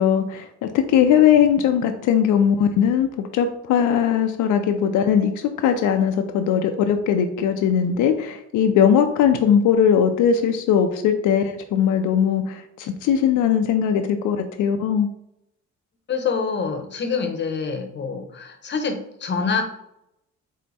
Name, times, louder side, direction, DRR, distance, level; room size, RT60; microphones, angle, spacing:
voice 1, 0.0-15.1, left 8 dB, 80° left, 6 dB, 0.5 m, -19 dB
voice 2, 16.1-19.6, left 5 dB, 35° left, 5 dB, 0.8 m, -26 dB
4.5 x 2.1 x 4.0 m, 0.80 s
cardioid pair, 90°, 30 cm